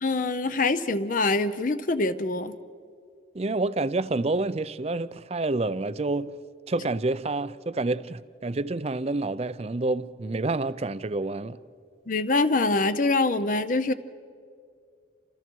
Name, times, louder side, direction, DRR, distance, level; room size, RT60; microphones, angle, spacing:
voice 1, 0.0-2.6 12.1-13.9, left 3 dB, 45° left, 0.6 m, -24 dB
voice 2, 3.3-6.4 6.7-11.6, right 2 dB, 35° right, 0.5 m, -28 dB
29.5 x 27.0 x 4.6 m
head